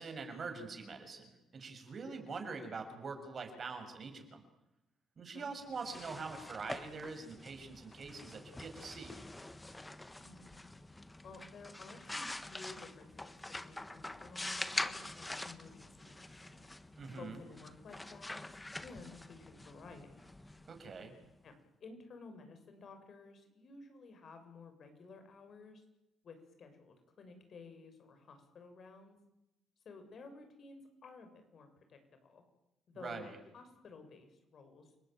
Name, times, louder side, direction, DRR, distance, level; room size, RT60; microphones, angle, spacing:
voice 1, 0.0-4.4 5.2-9.1 17.0-17.4 20.7-21.1 32.9-33.4, right 4 dB, 45° right, 6 dB, 6.8 m, -44 dB
sound 1, 5.6-21.3, left 2 dB, 15° left, 1.6 m, -45 dB
voice 2, 10.2-10.6 11.2-13.4 13.6-16.6 17.2-18.5 18.8-20.3 21.4-25.8 26.2-29.2 29.9-32.4 32.9-33.3 33.5-34.9, left 4 dB, 55° left, 7 dB, 7.0 m, -54 dB
29.5 x 19.5 x 9.2 m, 0.92 s
cardioid pair, 90°, 0 cm